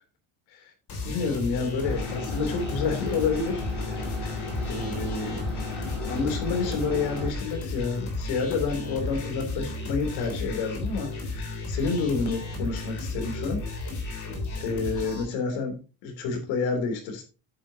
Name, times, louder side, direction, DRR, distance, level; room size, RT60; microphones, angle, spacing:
sound 1, 0.9-15.2, left 2 dB, 40° left, 3.5 m, -33 dB
voice 1, 1.0-3.6 3.9-4.2 4.7-5.4 6.1-13.6 14.6-17.2, left 4 dB, 80° left, 4 dB, 3.5 m, -29 dB
sound 2, 1.8-7.3, left 2 dB, ahead, 5.5 m, -36 dB
10.5 x 8.7 x 2.9 m, 0.32 s
cardioid pair, 180°, 45 cm